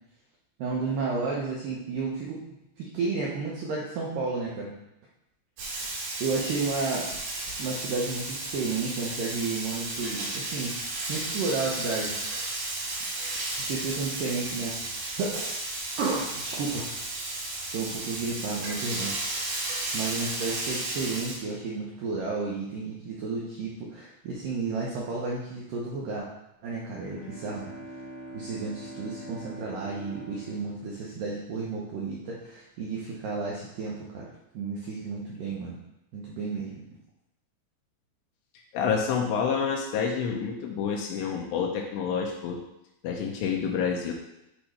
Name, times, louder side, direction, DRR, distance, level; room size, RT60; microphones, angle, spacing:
voice 1, 0.6-2.4 2.8-4.7 6.2-7.1 7.6-10.8 11.1-12.2 13.3-15.4 16.0-16.9 17.7-19.2 19.9-26.3 26.6-27.7 28.3-34.3 34.5-35.8 36.1-36.9, right 4 dB, 85° right, -4 dB, 1.9 m, -32 dB
Frying (food), 5.6-21.4, right 2 dB, 65° right, 4.1 m, -33 dB
Bowed string instrument, 26.6-32.1, right 1 dB, 35° right, 0.8 m, -44 dB
voice 2, 38.7-42.6 43.0-44.1, left 6 dB, 85° left, 0 dB, 2.8 m, -28 dB
8.6 x 3.0 x 5.0 m, 0.86 s
omnidirectional pair, 5.1 m